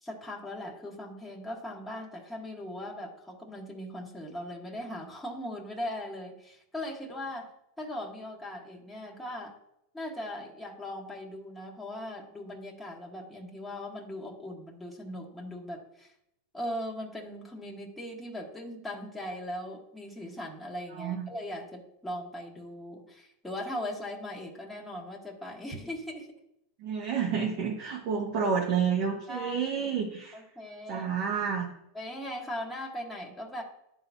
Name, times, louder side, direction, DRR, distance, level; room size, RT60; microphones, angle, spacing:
voice 1, 0.0-7.5 7.8-9.6 9.9-16.1 16.5-26.3 29.3-29.6 30.3-31.1 31.9-33.6, left 1 dB, 5° left, -1 dB, 1.5 m, -39 dB
voice 2, 20.9-21.3 26.8-30.4 30.9-31.7, right 6 dB, 55° right, -2 dB, 1.3 m, -30 dB
11.0 x 3.8 x 2.8 m, 0.79 s
hypercardioid pair, 110°, 0 cm